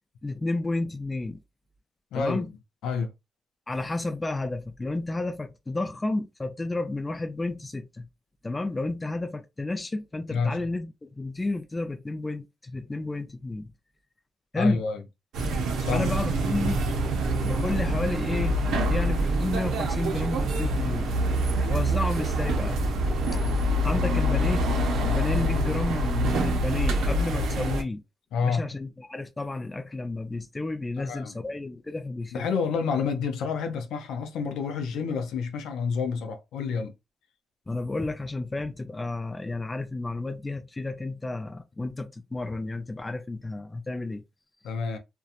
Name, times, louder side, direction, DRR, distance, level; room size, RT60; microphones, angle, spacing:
voice 1, 0.2-1.4 2.1-2.5 3.7-8.1 8.4-13.7 14.5-14.8 15.9-16.8 17.4-21.2 21.7-22.8 23.8-24.7 25.0-28.0 28.4-32.4 37.7-44.2, left 2 dB, 20° left, 0.4 m, -31 dB
voice 2, 2.1-2.5 2.8-3.1 10.3-10.6 14.6-15.0 15.8-16.1 28.3-28.7 31.0-31.4 32.3-36.9 44.6-45.0, left 5 dB, 90° left, 0.5 m, -29 dB
sound 1, 15.3-27.8, right 1 dB, 75° right, 0.6 m, -26 dB
2.8 x 2.2 x 2.4 m
cardioid pair, 105°, 0 cm